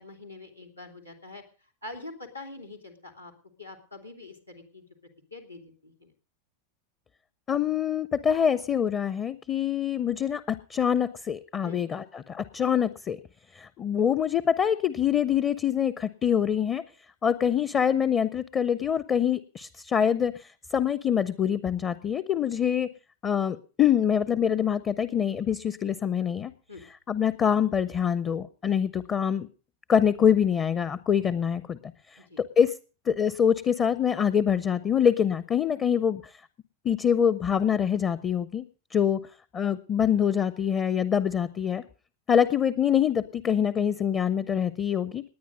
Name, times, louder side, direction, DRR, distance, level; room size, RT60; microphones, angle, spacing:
voice 1, 0.0-1.4 1.8-3.3 3.6-4.8 5.3-6.1 11.6-11.8 26.7-26.8 32.2-32.4, left 2 dB, 90° left, 1 dB, 2.9 m, -44 dB
voice 2, 7.5-13.2 13.5-16.8 17.2-22.9 23.2-26.5 27.1-29.5 29.9-31.8 32.1-32.7 33.1-36.4 36.8-38.6 38.9-39.2 39.5-41.8 42.3-45.2, left 8 dB, 25° left, 17 dB, 0.7 m, -25 dB
19.0 x 9.7 x 5.2 m, 0.37 s
figure-of-eight pair, 90°, 0 cm